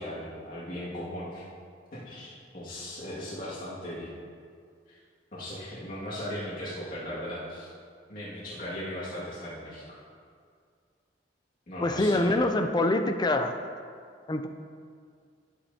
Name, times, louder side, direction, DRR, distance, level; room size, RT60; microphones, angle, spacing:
voice 1, 0.0-1.4 1.9-4.1 4.9-5.0 5.3-7.7 8.1-10.0 11.7-12.4, equal, 50° left, -9 dB, 2.1 m, -38 dB
voice 2, 11.8-13.5 14.3-14.5, left 2 dB, 25° left, 7 dB, 0.4 m, -25 dB
11.5 x 8.7 x 2.8 m, 2.2 s
head